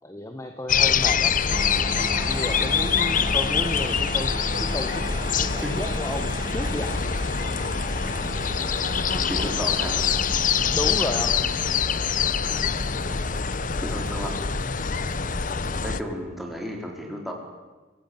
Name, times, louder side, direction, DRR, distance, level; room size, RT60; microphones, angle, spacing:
voice 1, 0.0-1.3 2.3-6.9 10.7-11.4, left 1 dB, 15° left, 6 dB, 1.4 m, -32 dB
sound 1, 0.7-16.0, left 6 dB, 45° left, 0.8 m, -25 dB
sound 2, 1.5-11.2, right 3 dB, 25° right, 0.7 m, -37 dB
sound 3, 4.5-15.8, right 2 dB, 75° right, 6.2 m, -45 dB
voice 2, 9.1-10.0 13.8-14.3 15.8-17.3, equal, ahead, 0 dB, 4.6 m, -33 dB
24.5 x 16.5 x 9.4 m, 1.3 s
head